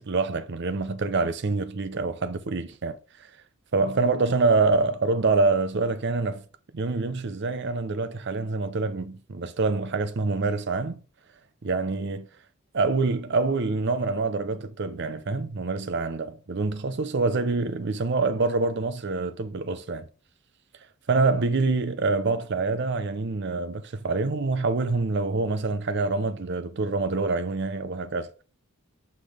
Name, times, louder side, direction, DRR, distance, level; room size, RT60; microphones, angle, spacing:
voice 1, 0.0-3.0 3.7-6.4 6.7-11.0 11.6-12.3 12.7-20.0 21.1-28.4, right 3 dB, 55° right, 0.6 m, -26 dB
5.9 x 5.1 x 3.5 m
head